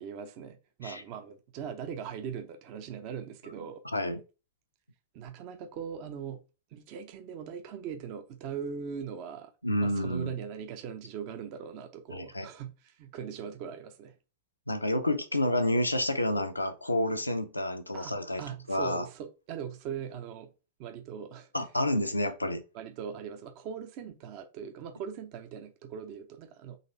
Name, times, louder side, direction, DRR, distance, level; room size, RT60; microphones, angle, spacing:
voice 1, 0.0-3.8 5.1-6.4 6.7-9.5 9.8-14.1 17.9-20.5 20.8-21.5 22.7-26.8, right 7 dB, 45° right, 0.7 m, -40 dB
voice 2, 9.6-10.3 12.1-12.5 14.7-18.4 18.7-19.0 21.5-22.6, left 1 dB, 85° left, 0.6 m, -29 dB
4.2 x 3.1 x 3.9 m
figure-of-eight pair, 90°, 0 cm